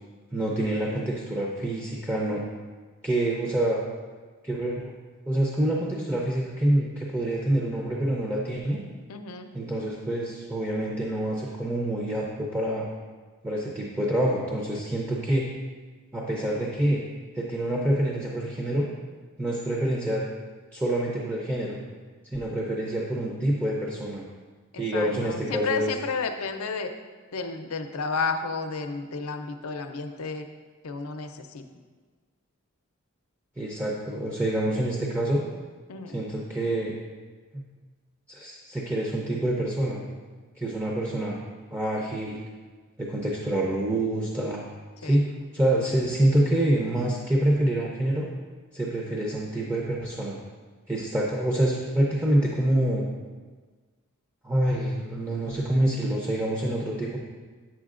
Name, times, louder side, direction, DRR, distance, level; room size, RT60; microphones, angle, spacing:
voice 1, 0.3-2.4 3.0-3.8 4.4-4.9 5.3-8.8 9.5-12.9 13.4-15.5 16.1-17.0 17.3-18.9 19.4-20.2 20.7-21.8 22.3-24.2 24.8-25.9 33.6-35.4 36.1-36.9 37.5-37.6 38.3-40.0 40.6-41.4 41.7-42.4 43.0-44.6 45.0-48.3 48.7-50.4 50.9-53.1 54.4-57.2, right 1 dB, 10° right, -3 dB, 0.6 m, -26 dB
voice 2, 9.1-9.5 24.7-26.9 27.3-30.5 30.8-31.7 35.9-36.2 45.0-45.2, left 4 dB, 75° left, 6 dB, 0.6 m, -32 dB
8.4 x 7.4 x 2.5 m, 1.4 s
head